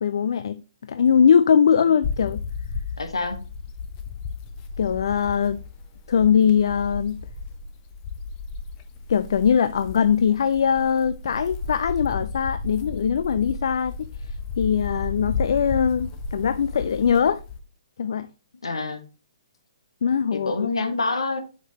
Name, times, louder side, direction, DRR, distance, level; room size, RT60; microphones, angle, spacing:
voice 1, 0.0-2.4 4.8-5.6 6.1-7.2 9.1-13.9 14.6-17.4 18.0-18.3 20.0-20.5, left 7 dB, 55° left, 0.4 m, -21 dB
sound 1, 2.0-17.6, left 4 dB, 25° left, 0.9 m, -34 dB
voice 2, 3.0-3.4 18.6-19.0 20.3-21.4, left 3 dB, 70° left, 1.4 m, -26 dB
8.1 x 6.0 x 3.0 m
figure-of-eight pair, 125°, 3 cm